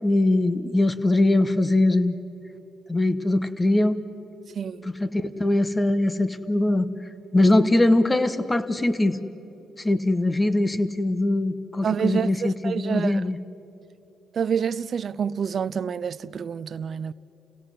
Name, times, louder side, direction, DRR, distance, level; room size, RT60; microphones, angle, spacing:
voice 1, 0.0-2.2 2.9-4.0 4.8-6.9 7.3-9.2 9.8-13.4, left 2 dB, 15° left, 1.1 m, -22 dB
voice 2, 4.5-4.9 11.8-13.2 14.3-17.1, right 7 dB, 50° right, 0.5 m, -27 dB
29.5 x 17.0 x 7.6 m
cardioid pair, 90°, 0 cm